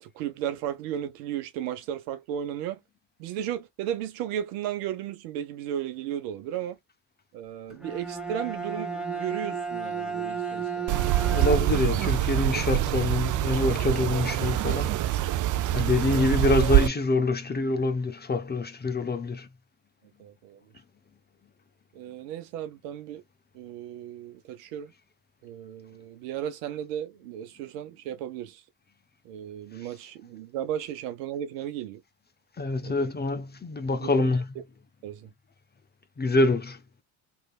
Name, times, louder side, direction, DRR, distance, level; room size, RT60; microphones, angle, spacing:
voice 1, 0.0-2.8 3.2-6.8 7.3-10.9 20.2-20.6 21.9-23.2 23.5-24.9 25.4-28.6 29.2-32.0 32.8-33.1 34.0-34.3 35.0-35.3, right 10 dB, 85° right, 1.0 m, -35 dB
Bowed string instrument, 7.7-12.0, right 5 dB, ahead, 1.2 m, -33 dB
sound 1, 10.9-16.9, right 14 dB, 45° right, 0.4 m, -25 dB
voice 2, 11.3-15.4 15.7-19.5 32.6-34.5 36.2-36.8, left 2 dB, 20° left, 0.7 m, -26 dB
3.2 x 2.7 x 2.3 m
hypercardioid pair, 65°, 46 cm